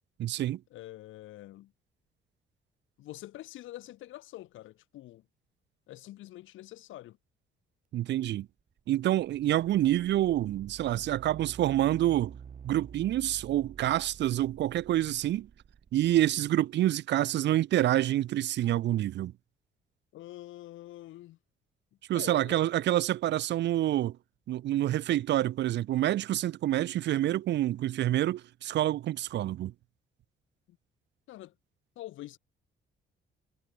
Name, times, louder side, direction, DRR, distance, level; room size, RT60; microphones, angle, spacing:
voice 1, 0.2-0.6 7.9-8.5 8.9-12.3 12.6-15.5 15.9-19.3 22.1-24.2 24.5-29.7, right 13 dB, 65° right, 0.5 m, -27 dB
voice 2, 0.7-1.7 3.0-5.2 5.9-7.2 20.1-21.4 22.1-22.7 30.7-30.8 31.3-31.5 32.0-32.4, left 15 dB, 80° left, 0.7 m, -46 dB
sound 1, 8.6-16.6, right 7 dB, 45° right, 1.2 m, -49 dB
cardioid pair, 90°, 20 cm